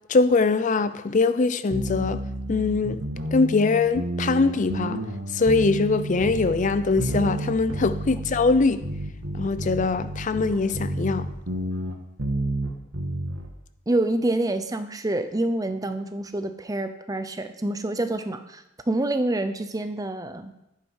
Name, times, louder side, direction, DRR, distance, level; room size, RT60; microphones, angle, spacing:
voice 1, 0.1-2.2 2.5-3.0 3.3-5.0 5.3-8.8 9.4-11.3, left 3 dB, 35° left, 0.4 m, -22 dB
sound 1, 1.7-13.5, right 1 dB, 75° right, 1.8 m, -31 dB
voice 2, 13.9-20.5, right 1 dB, 15° right, 0.7 m, -27 dB
11.5 x 9.4 x 4.8 m
head